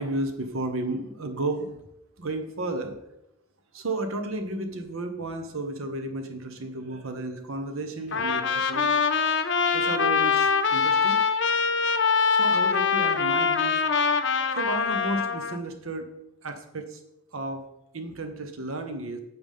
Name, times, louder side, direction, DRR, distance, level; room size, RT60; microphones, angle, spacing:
voice 1, 0.0-1.7 2.2-2.9 3.7-8.9 9.7-11.2 12.3-13.8 14.6-16.1 16.4-17.0 17.3-17.6 17.9-19.2, right 2 dB, 80° right, 6 dB, 1.0 m, -32 dB
Trumpet, 8.1-15.6, left 5 dB, 60° left, 0.6 m, -23 dB
8.9 x 8.0 x 3.7 m, 0.84 s
head